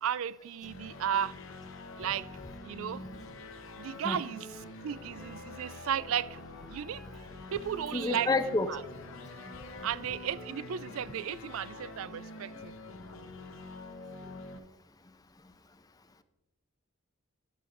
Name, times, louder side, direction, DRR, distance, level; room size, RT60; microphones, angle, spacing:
voice 1, 0.0-1.4 2.0-2.3 2.6-3.0 3.8-4.5 4.8-6.4 6.7-7.0 7.5-8.3 8.7-8.8 9.8-12.7, right 9 dB, 80° right, 0.3 m, -34 dB
sound 1, 0.6-14.6, left 2 dB, 70° left, 0.8 m, -46 dB
Wind instrument woodwind instrument, 4.3-7.3 7.6-10.8, equal, ahead, 1.0 m, -55 dB
voice 2, 7.9-8.7 9.4-9.9 13.1-13.2 14.2-14.3, left 3 dB, 20° left, 0.5 m, -31 dB
12.5 x 9.6 x 2.5 m
head